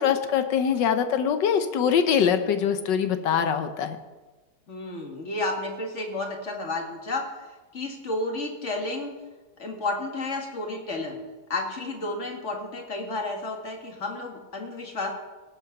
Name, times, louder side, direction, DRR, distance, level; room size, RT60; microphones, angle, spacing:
voice 1, 0.0-4.0, left 7 dB, 80° left, 8 dB, 1.6 m, -23 dB
voice 2, 4.7-7.3 7.7-9.1 9.6-11.2 11.5-15.1, left 2 dB, 40° left, 2 dB, 2.2 m, -31 dB
18.0 x 8.0 x 5.9 m, 1.2 s
omnidirectional pair, 1.9 m